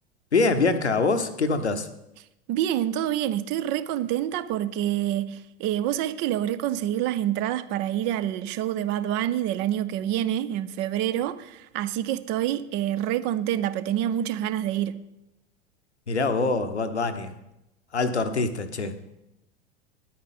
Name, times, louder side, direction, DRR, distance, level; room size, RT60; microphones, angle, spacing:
voice 1, 0.3-1.9 16.1-17.3 17.9-19.0, left 3 dB, 85° left, 0.9 m, -24 dB
voice 2, 2.5-15.0, right 12 dB, 35° right, 0.5 m, -27 dB
10.0 x 8.4 x 4.1 m
figure-of-eight pair, 85°, 33 cm